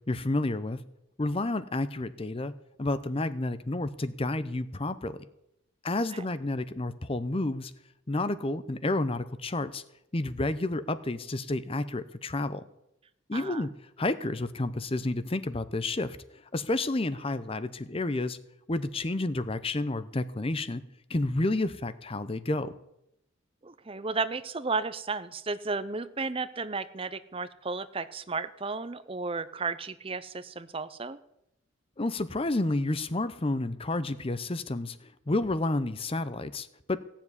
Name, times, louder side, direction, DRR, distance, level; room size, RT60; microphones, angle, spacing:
voice 1, 0.1-0.8 1.2-2.5 2.8-5.2 5.8-7.7 8.1-9.8 10.1-12.7 13.3-13.7 14.0-18.4 18.7-20.8 21.1-22.7 32.0-37.0, left 2 dB, 30° left, 13 dB, 0.7 m, -30 dB
voice 2, 13.3-13.6 23.6-31.2, right 4 dB, 25° right, 14 dB, 0.7 m, -33 dB
17.0 x 7.3 x 9.7 m, 0.82 s
head